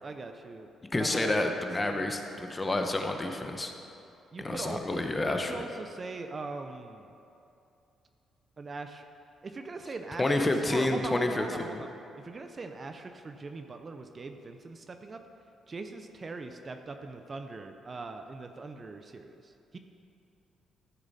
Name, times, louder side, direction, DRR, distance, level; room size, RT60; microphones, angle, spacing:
voice 1, 0.0-1.5 1.8-2.1 4.3-7.1 8.6-9.0 9.4-11.9 12.2-15.2 15.7-19.8, right 3 dB, 35° right, 7 dB, 0.6 m, -41 dB
voice 2, 0.9-3.7 4.4-5.6 10.2-11.8, left 2 dB, 20° left, 4 dB, 0.9 m, -29 dB
13.0 x 6.9 x 4.2 m, 2.7 s
cardioid pair, 90°, 0 cm